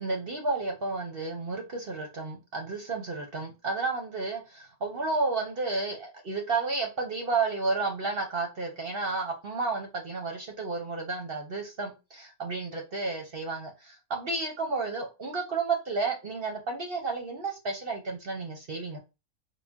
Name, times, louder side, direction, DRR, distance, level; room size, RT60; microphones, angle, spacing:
voice 1, 0.0-19.0, right 3 dB, 50° right, 2 dB, 0.7 m, -32 dB
3.8 x 2.2 x 3.5 m, 0.27 s
omnidirectional pair, 1.6 m